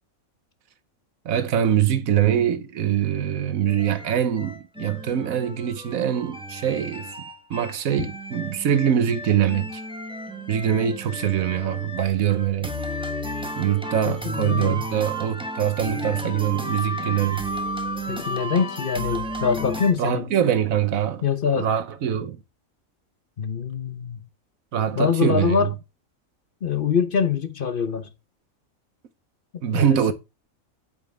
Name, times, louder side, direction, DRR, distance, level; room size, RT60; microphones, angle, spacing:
voice 1, 1.2-7.1 7.5-9.8 10.5-12.7 13.6-17.5 20.0-21.2 21.5-22.4 24.7-25.7 29.6-30.1, right 9 dB, 80° right, 1.3 m, -23 dB
sound 1, 3.7-19.9, equal, 5° right, 1.0 m, -33 dB
voice 2, 14.0-14.9 18.1-20.2 21.2-21.7 23.4-24.2 25.0-25.7 26.6-28.1 29.7-30.1, left 6 dB, 45° left, 0.9 m, -24 dB
8.9 x 5.8 x 3.3 m
omnidirectional pair, 1.4 m